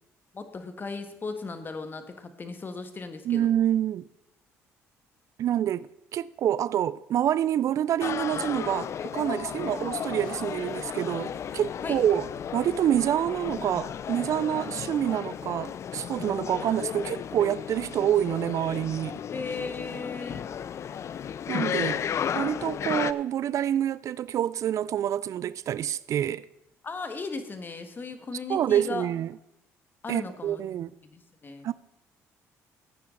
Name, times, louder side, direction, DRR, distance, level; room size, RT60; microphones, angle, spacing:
voice 1, 0.3-3.5 9.6-9.7 11.8-12.0 19.3-20.5 26.8-29.1 30.0-30.6 31.0-31.7, left 4 dB, 35° left, 1.7 m, -37 dB
voice 2, 3.2-4.0 5.4-12.3 12.5-19.2 21.5-22.0 22.3-26.5 28.5-29.3 30.1-30.9 31.6-31.7, right 10 dB, 60° right, 0.4 m, -27 dB
sound 1, 8.0-23.1, left 8 dB, 50° left, 0.5 m, -34 dB
sound 2, 9.2-19.8, left 4 dB, 85° left, 3.2 m, -55 dB
15.0 x 9.4 x 3.9 m
supercardioid pair, 70°, 6 cm